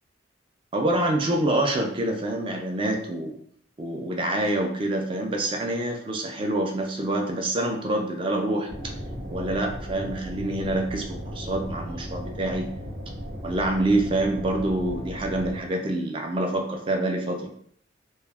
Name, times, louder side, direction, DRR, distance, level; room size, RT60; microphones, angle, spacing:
voice 1, 0.7-3.4 3.8-8.9 9.3-12.7 13.4-17.5, right 1 dB, 25° right, 2 dB, 0.3 m, -26 dB
sound 1, 8.7-15.6, equal, 50° right, 0.8 m, -36 dB
2.2 x 2.1 x 3.3 m, 0.64 s
head